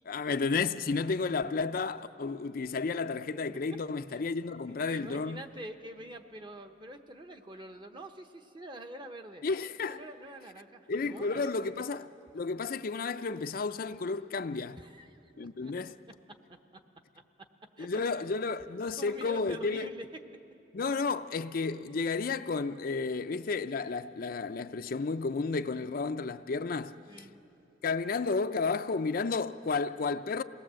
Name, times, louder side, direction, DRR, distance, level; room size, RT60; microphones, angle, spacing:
voice 1, 0.1-5.4 9.4-10.0 10.9-12.0 12.3-14.8 15.4-15.9 17.8-19.9 20.7-26.9 27.8-30.4, left 4 dB, 55° left, 0.5 m, -32 dB
voice 2, 4.7-9.4 9.8-11.8 14.8-15.7 17.8-18.2 19.0-20.1 27.1-27.3, right 1 dB, 25° right, 1.0 m, -46 dB
27.0 x 19.0 x 7.6 m
head